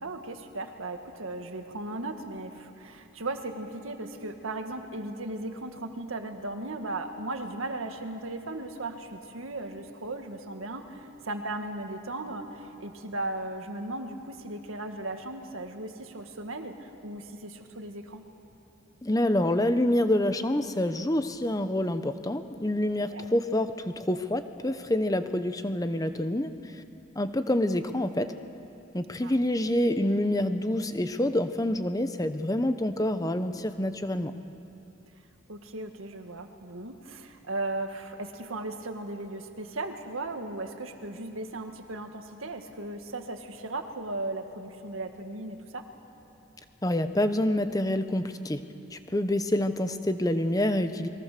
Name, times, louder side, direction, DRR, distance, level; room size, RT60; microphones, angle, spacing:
voice 1, 0.0-18.3 23.0-23.2 29.2-29.3 35.5-45.8, right 2 dB, 85° right, 5 dB, 1.8 m, -37 dB
voice 2, 19.0-26.5 27.2-28.3 28.9-34.3 46.8-48.6 48.9-51.1, left 1 dB, 15° left, 9 dB, 0.8 m, -27 dB
28.0 x 22.0 x 6.7 m, 2.8 s
head